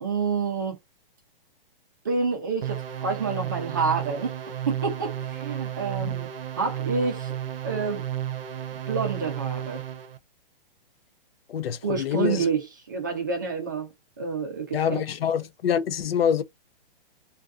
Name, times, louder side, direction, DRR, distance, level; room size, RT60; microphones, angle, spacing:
voice 1, 0.0-0.8 2.0-4.3 4.7-6.3 6.6-7.4 7.6-8.1 8.9-9.8 11.8-13.9 14.2-15.0, right 5 dB, 20° right, 0.5 m, -28 dB
sound 1, 2.6-10.2, right 11 dB, 75° right, 0.6 m, -32 dB
voice 2, 11.5-12.4 14.7-16.4, left 8 dB, 80° left, 0.6 m, -26 dB
2.5 x 2.3 x 2.3 m
hypercardioid pair, 175°, 29 cm